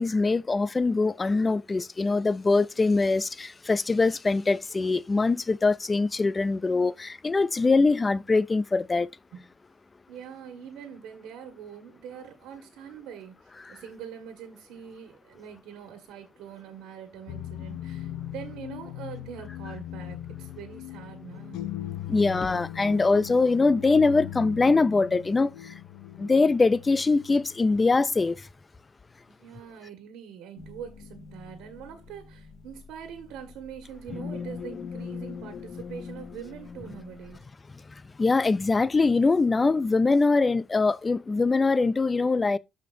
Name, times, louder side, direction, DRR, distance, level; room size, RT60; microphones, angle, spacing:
voice 1, 0.0-9.1 22.1-25.5 26.2-28.5 38.2-42.6, left 3 dB, 15° left, 0.3 m, -23 dB
voice 2, 10.1-21.6 29.3-37.4, right 8 dB, 75° right, 1.6 m, -43 dB
sound 1, 17.3-28.0, left 12 dB, 85° left, 0.7 m, -39 dB
sound 2, 30.6-37.4, left 5 dB, 45° left, 1.8 m, -41 dB
13.0 x 5.0 x 2.6 m
cardioid pair, 170°, 0 cm